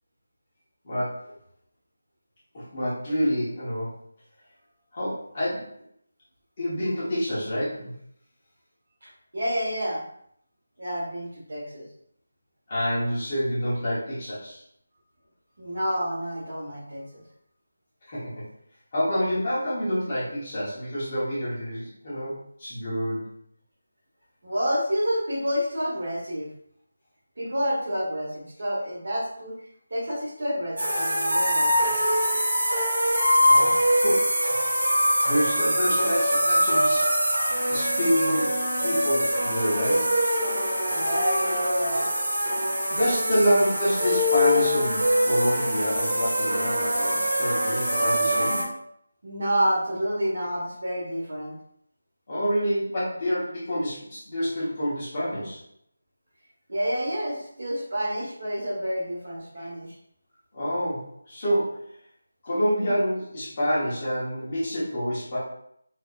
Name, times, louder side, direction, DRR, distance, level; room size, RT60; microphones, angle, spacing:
voice 1, 0.8-1.3 2.5-3.9 4.9-5.7 6.6-7.9 12.7-14.6 18.1-18.4 18.9-23.3 33.4-34.3 35.2-37.4 37.7-40.1 42.8-48.7 52.3-55.6 59.5-59.7 60.5-61.9 62.4-65.4, equal, 20° left, -9 dB, 1.0 m, -27 dB
voice 2, 9.0-10.0 10.8-11.8 15.6-17.2 24.4-26.5 27.4-29.5 29.9-32.1 40.9-42.1 49.2-51.5 56.7-60.0, equal, 45° right, -4 dB, 1.4 m, -29 dB
sound 1, 30.8-48.6, equal, 70° right, 1.3 m, -23 dB
4.2 x 2.7 x 2.4 m, 0.69 s
figure-of-eight pair, 180°, 0 cm